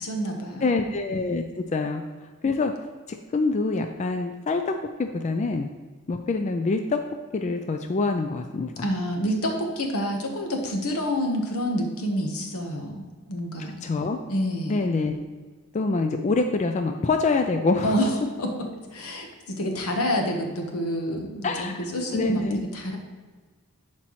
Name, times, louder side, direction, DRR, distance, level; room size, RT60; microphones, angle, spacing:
voice 1, 0.0-0.8 8.8-13.0 13.3-13.8 14.3-14.8 17.8-18.1 18.4-18.6 18.9-23.0, equal, 80° left, 3 dB, 1.2 m, -28 dB
voice 2, 0.6-2.0 2.4-2.7 3.1-4.7 5.0-5.7 6.1-7.0 7.3-8.9 13.8-14.2 14.7-15.2 15.7-18.0 21.4-21.7 22.1-22.6, left 3 dB, 30° left, 6 dB, 0.3 m, -25 dB
11.0 x 4.4 x 3.1 m, 1.4 s
head